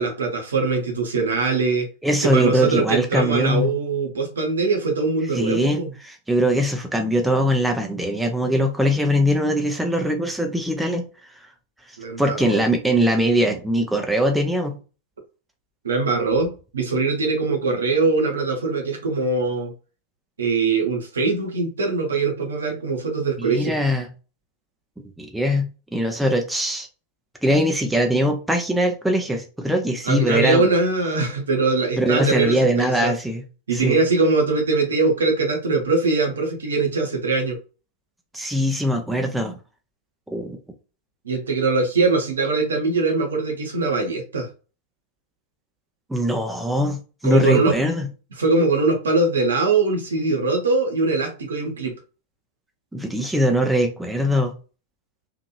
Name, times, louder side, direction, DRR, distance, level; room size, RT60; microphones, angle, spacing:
voice 1, 0.0-1.9 2.2-5.9 12.0-12.6 15.8-19.7 20.4-23.8 30.0-33.1 33.7-37.6 41.2-44.5 47.2-47.8 48.4-51.9, right 3 dB, 70° right, 2 dB, 0.8 m, -22 dB
voice 2, 2.0-3.7 5.3-11.1 12.2-14.8 23.4-24.1 25.2-26.9 27.4-30.6 32.0-33.4 33.7-34.0 38.3-39.6 40.3-40.6 46.1-48.1 52.9-54.5, equal, 5° right, 3 dB, 0.5 m, -21 dB
2.9 x 2.5 x 2.4 m, 0.34 s
figure-of-eight pair, 90°, 0 cm